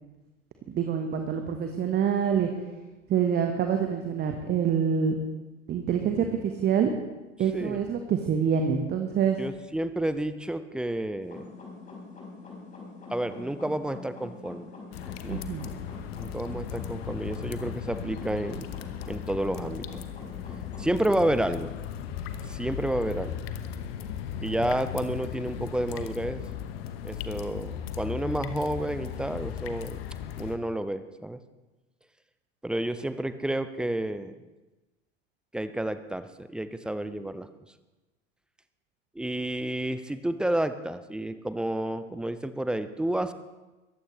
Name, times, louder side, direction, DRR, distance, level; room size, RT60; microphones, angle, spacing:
voice 1, 0.7-2.5 3.1-5.1 5.7-6.9 7.4-9.4 15.3-15.7, right 7 dB, 25° right, 5 dB, 1.2 m, -26 dB
voice 2, 9.4-11.5 13.1-14.7 15.2-15.4 16.2-18.7 19.1-20.0 20.8-21.7 22.5-23.4 24.4-26.4 27.0-30.0 30.4-31.4 32.6-34.4 35.5-37.5 39.2-43.3, right 1 dB, ahead, 12 dB, 0.4 m, -30 dB
sound 1, 11.2-21.2, left 3 dB, 20° left, 4.8 m, -44 dB
sound 2, 14.9-30.6, left 9 dB, 50° left, 1.1 m, -37 dB
22.0 x 14.5 x 3.2 m, 1.1 s
figure-of-eight pair, 85°, 37 cm